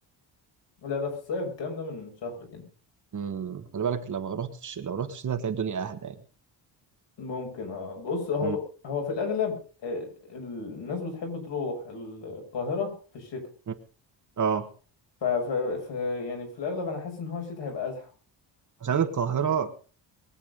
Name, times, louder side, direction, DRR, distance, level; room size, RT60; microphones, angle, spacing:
voice 1, 0.8-2.6 7.2-13.5 15.2-18.1, left 4 dB, 70° left, 2 dB, 6.3 m, -32 dB
voice 2, 3.1-6.1 8.4-8.6 14.4-14.7 18.8-19.7, right 7 dB, 40° right, 8 dB, 1.5 m, -29 dB
22.0 x 8.5 x 5.3 m, 0.39 s
cardioid pair, 150°, 44 cm